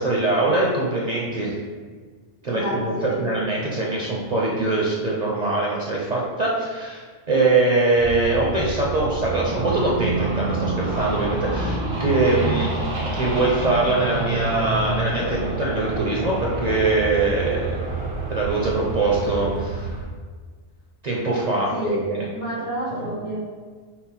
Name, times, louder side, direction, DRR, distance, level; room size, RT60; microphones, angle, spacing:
voice 1, 0.0-1.5 2.4-12.8 13.1-17.8 18.3-19.9 21.0-22.2, right 2 dB, 45° right, -4 dB, 0.6 m, -23 dB
voice 2, 2.4-3.2 21.7-22.0 22.3-23.4, equal, 70° left, -7 dB, 2.0 m, -29 dB
sound 1, 8.0-20.0, right 3 dB, 85° right, 1.3 m, -28 dB
5.6 x 2.1 x 4.3 m, 1.5 s
omnidirectional pair, 1.3 m